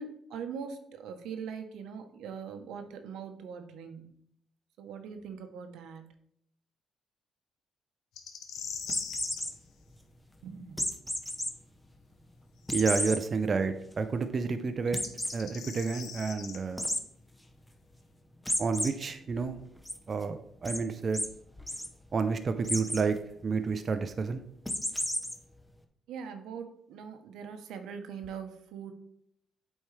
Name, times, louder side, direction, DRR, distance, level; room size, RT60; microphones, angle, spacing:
voice 1, 0.0-4.1 4.8-6.0 10.4-10.8 26.1-28.9, right 6 dB, 85° right, 7 dB, 0.8 m, -42 dB
sound 1, 8.2-9.5 12.7-12.8 14.9-16.6, left 7 dB, 85° left, 0.8 m, -41 dB
sound 2, 8.8-9.5 10.8-11.5 11.9-12.0 12.7-13.2 13.7-13.8 14.1-14.2 14.9-15.4 16.8-17.0 18.5-18.9 19.3-19.9 20.7-20.8 21.1-21.3 21.6-21.9 22.6-23.0 24.7-25.3, left 1 dB, 5° left, 0.8 m, -32 dB
voice 2, 12.7-15.0 15.3-16.8 18.6-19.6 20.1-21.3 22.1-23.2 23.4-24.4, right 5 dB, 40° right, 8 dB, 0.5 m, -30 dB
8.2 x 4.4 x 3.2 m, 0.71 s
cardioid pair, 90°, 0 cm